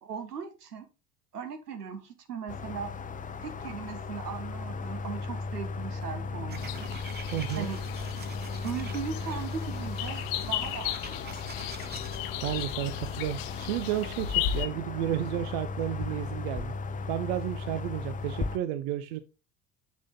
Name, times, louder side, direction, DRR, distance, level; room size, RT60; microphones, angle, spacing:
voice 1, 0.0-0.8 1.3-2.9 3.4-6.9 7.5-7.8 8.6-10.2 10.5-11.4, right 6 dB, 80° right, 1.5 m, -38 dB
sound 1, 2.5-18.6, left 4 dB, 15° left, 0.7 m, -37 dB
sound 2, 6.5-12.2, right 7 dB, 20° right, 0.8 m, -47 dB
sound 3, 6.6-14.7, left 11 dB, 45° left, 0.9 m, -35 dB
voice 2, 7.3-7.7 12.4-16.7 17.1-19.2, right 12 dB, 55° right, 0.8 m, -32 dB
7.4 x 6.4 x 3.7 m
figure-of-eight pair, 70°, 46 cm